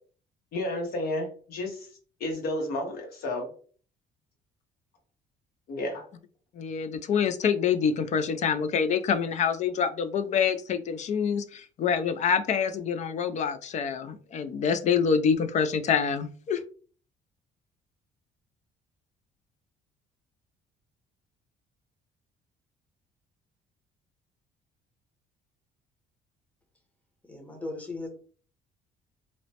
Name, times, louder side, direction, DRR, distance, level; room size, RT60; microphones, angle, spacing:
voice 1, 0.5-1.9 2.2-3.5 5.7-6.0, left 1 dB, 65° left, 2 dB, 1.0 m, -31 dB
voice 2, 6.6-16.6, left 6 dB, 45° left, 10 dB, 0.4 m, -26 dB
voice 3, 27.3-28.1, left 2 dB, 10° left, 3 dB, 0.8 m, -37 dB
2.9 x 2.1 x 2.8 m, 0.42 s
cardioid pair, 110°, 17 cm